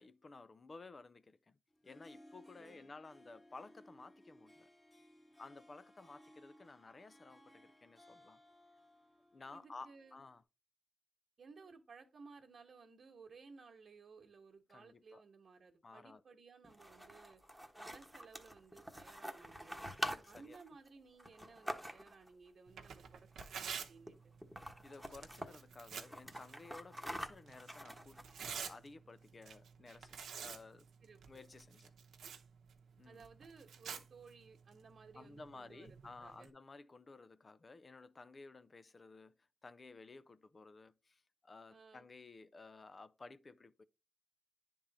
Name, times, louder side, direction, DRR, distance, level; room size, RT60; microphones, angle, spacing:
voice 1, 0.0-1.6 1.8-4.7 5.4-8.4 9.3-10.4 14.7-15.2 15.8-16.2 19.9-20.6 24.8-30.9 31.3-31.9 33.0-33.2 35.1-39.4 39.6-43.8, left 3 dB, 40° left, 0.5 m, -55 dB
Harp, 1.7-10.4, left 1 dB, 25° left, 1.6 m, -63 dB
voice 2, 2.6-2.9 9.5-10.2 11.4-17.4 17.8-19.9 20.3-24.4 31.0-31.4 33.0-36.5 41.7-42.1, right 4 dB, 65° right, 1.2 m, -59 dB
sound 1, 16.6-22.3 23.3-23.8 24.1-24.2 24.4-25.5 25.9-28.6, equal, ahead, 1.2 m, -46 dB
Tearing, 22.7-36.5, right 7 dB, 90° right, 0.8 m, -51 dB
10.0 x 3.7 x 4.0 m
cardioid pair, 65°, 0 cm